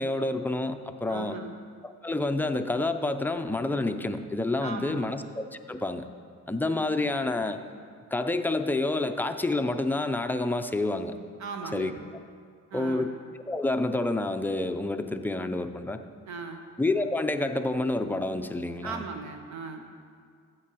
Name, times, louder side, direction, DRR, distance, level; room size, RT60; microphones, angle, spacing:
voice 1, 0.0-1.4 1.8-6.0 6.5-7.6 8.1-11.1 11.7-11.9 12.7-13.1 13.5-16.0 16.8-19.0, left 2 dB, 5° left, 7 dB, 0.4 m, -28 dB
voice 2, 1.1-1.5 4.6-5.1 11.4-11.9 12.7-13.1 16.3-16.6 18.8-19.8, right 5 dB, 70° right, 5 dB, 0.8 m, -37 dB
13.0 x 7.7 x 3.0 m, 2.1 s
cardioid pair, 90°, 30 cm